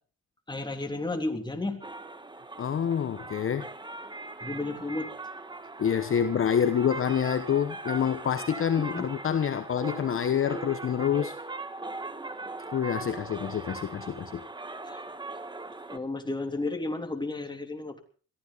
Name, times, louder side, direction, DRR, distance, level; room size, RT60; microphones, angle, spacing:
voice 1, 0.5-1.8 4.4-5.1 8.8-9.4 14.9-15.0 15.9-18.0, left 2 dB, 15° left, 3.3 m, -33 dB
sound 1, 1.8-16.0, right 3 dB, 15° right, 1.5 m, -40 dB
voice 2, 2.6-3.7 5.8-11.3 12.7-14.4, left 8 dB, 45° left, 1.1 m, -27 dB
22.0 x 15.0 x 4.1 m
cardioid pair, 90°, 30 cm